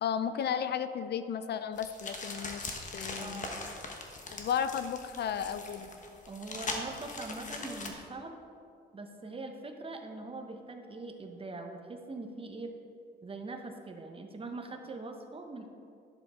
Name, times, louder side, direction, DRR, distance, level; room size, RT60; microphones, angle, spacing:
voice 1, 0.0-3.4 4.3-5.9, left 8 dB, 55° left, 11 dB, 0.5 m, -34 dB
sound 1, 1.8-7.9, left 3 dB, 40° left, 1.2 m, -41 dB
voice 2, 3.1-3.6 6.3-8.4 8.9-12.7 13.2-15.7, right 3 dB, 30° right, 5 dB, 1.0 m, -42 dB
11.0 x 7.0 x 3.7 m, 2.4 s
cardioid pair, 90°, 20 cm